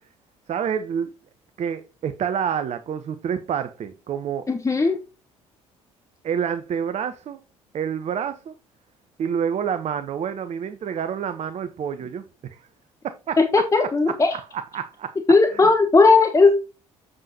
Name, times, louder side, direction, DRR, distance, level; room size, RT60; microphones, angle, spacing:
voice 1, 0.5-1.1 1.6-4.5 6.2-7.4 7.7-8.5 9.2-12.7 13.0-15.1 15.5-15.7, right 8 dB, 40° right, 0.8 m, -28 dB
voice 2, 4.5-5.0 13.4-14.3 15.3-16.5, left 3 dB, 20° left, 1.1 m, -17 dB
7.6 x 7.6 x 2.8 m
figure-of-eight pair, 50°, 17 cm